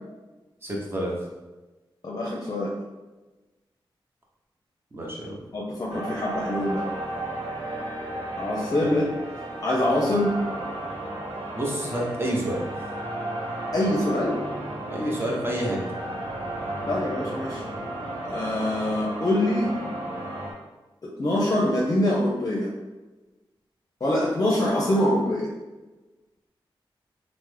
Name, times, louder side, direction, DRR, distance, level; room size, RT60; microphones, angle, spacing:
voice 1, 0.6-1.1 4.9-5.4 8.8-9.0 11.5-12.6 14.9-15.8, right 1 dB, 25° right, -3 dB, 0.8 m, -29 dB
voice 2, 2.0-2.7 5.5-6.8 8.4-9.1 9.6-10.3 13.7-14.4 16.9-17.6 18.2-19.7 21.2-22.7 24.0-25.5, left 1 dB, 40° left, -4 dB, 0.6 m, -24 dB
sound 1, 5.9-20.5, right 1 dB, 85° right, 0.7 m, -33 dB
3.2 x 2.0 x 3.2 m, 1.1 s
cardioid pair, 65°, 9 cm